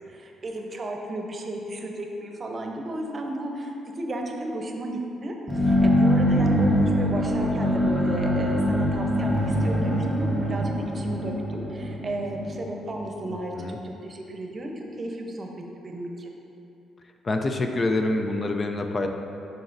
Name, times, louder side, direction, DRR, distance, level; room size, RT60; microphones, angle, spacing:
voice 1, 0.1-15.5 15.8-16.3, right 1 dB, 40° right, 2 dB, 0.8 m, -33 dB
sound 1, 5.5-13.2, equal, 5° left, 1.1 m, -23 dB
voice 2, 17.2-19.1, left 2 dB, 35° left, 4 dB, 0.4 m, -26 dB
11.0 x 4.0 x 2.6 m, 2.9 s
cardioid pair, 90°, 0 cm